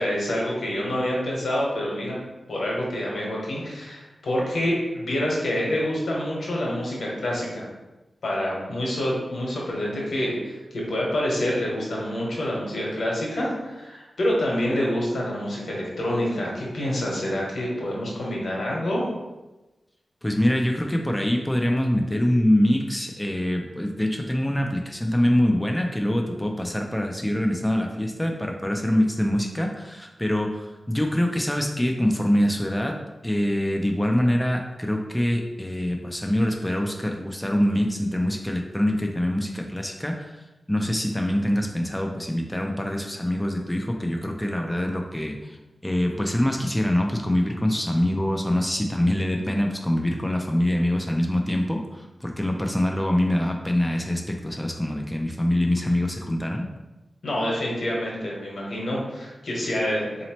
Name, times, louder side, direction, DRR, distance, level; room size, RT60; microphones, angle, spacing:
voice 1, 0.0-2.2 2.5-7.7 8.2-19.1 57.2-60.1, left 1 dB, 85° left, -3 dB, 1.1 m, -27 dB
voice 2, 20.2-32.9 33.2-45.6 45.8-56.7, left 1 dB, 10° left, 2 dB, 0.3 m, -24 dB
4.0 x 2.8 x 2.9 m, 1.1 s
wide cardioid pair, 135°, 0 cm